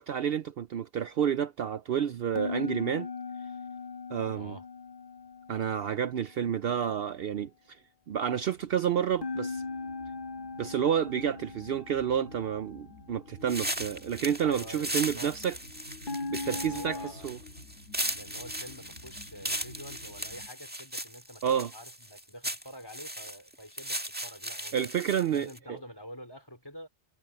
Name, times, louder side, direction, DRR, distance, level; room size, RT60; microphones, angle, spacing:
voice 1, 0.0-3.1 4.1-4.6 5.5-7.5 8.1-9.6 10.6-15.6 16.3-17.0 17.2-17.4 21.4-21.7 24.7-25.5, right 8 dB, 65° right, 0.8 m, -29 dB
sound 1, 2.3-6.5 9.2-13.4 16.1-17.1, left 4 dB, 45° left, 1.3 m, -39 dB
voice 2, 4.3-4.7 14.4-15.4 16.4-17.4 18.1-24.9 25.3-26.9, equal, 20° left, 3.4 m, -47 dB
sound 2, 8.3-20.5, left 2 dB, 85° left, 2.3 m, -51 dB
sound 3, 13.5-25.6, right 1 dB, 10° right, 1.7 m, -37 dB
omnidirectional pair, 1.2 m